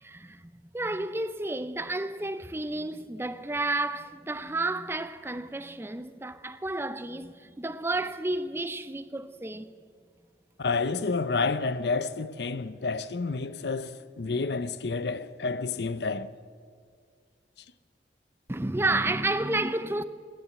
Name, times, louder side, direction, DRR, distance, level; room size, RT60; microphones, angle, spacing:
voice 1, 0.0-9.7 18.5-20.0, right 2 dB, 15° right, 0.5 m, -31 dB
voice 2, 10.6-16.3, left 4 dB, 70° left, 0.6 m, -29 dB
15.0 x 10.5 x 8.3 m
head